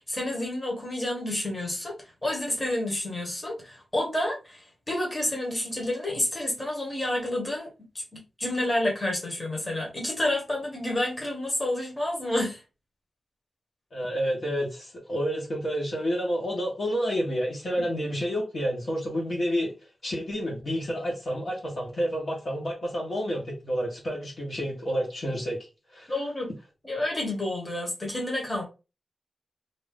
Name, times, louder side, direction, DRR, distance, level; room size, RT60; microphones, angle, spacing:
voice 1, 0.1-1.9 2.2-7.7 7.9-12.6 26.1-26.5 26.8-28.6, left 1 dB, 20° left, 1.2 m, -29 dB
voice 2, 13.9-19.7 20.0-25.6 25.9-26.1, equal, 50° left, 1.2 m, -29 dB
2.7 x 2.6 x 3.4 m
wide cardioid pair, 160°, 0 cm